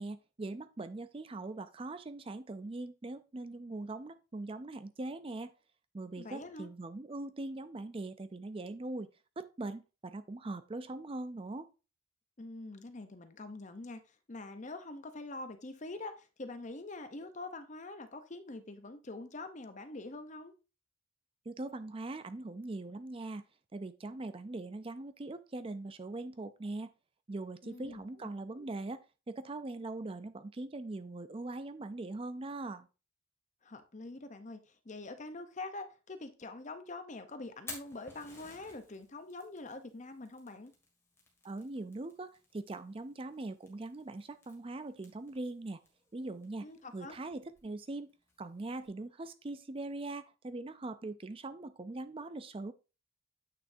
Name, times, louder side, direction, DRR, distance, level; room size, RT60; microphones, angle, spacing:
voice 1, 0.0-5.5 5.9-9.1 9.4-11.7 21.5-23.4 23.7-26.9 27.3-32.9 41.4-45.8 46.1-46.7 46.9-48.1 48.4-52.7, right 2 dB, 25° right, 0.4 m, -41 dB
voice 2, 6.2-6.7 12.4-20.5 27.6-28.3 28.6-28.7 33.6-40.7 46.6-47.2, left 2 dB, 35° left, 0.7 m, -45 dB
Fire, 37.4-48.9, left 2 dB, 15° left, 2.0 m, -56 dB
8.5 x 6.3 x 2.7 m
head